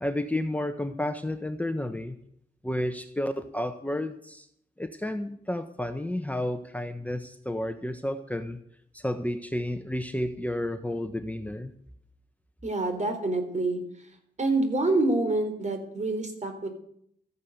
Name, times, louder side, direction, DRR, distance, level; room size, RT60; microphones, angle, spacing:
voice 1, 0.0-2.2 2.6-4.5 4.8-8.6 8.9-11.7, left 1 dB, 10° left, 7 dB, 1.2 m, -31 dB
voice 2, 12.6-13.8 14.4-16.7, right 2 dB, 45° right, 7 dB, 4.1 m, -26 dB
14.0 x 9.8 x 8.1 m, 0.69 s
cardioid pair, 60°, 17 cm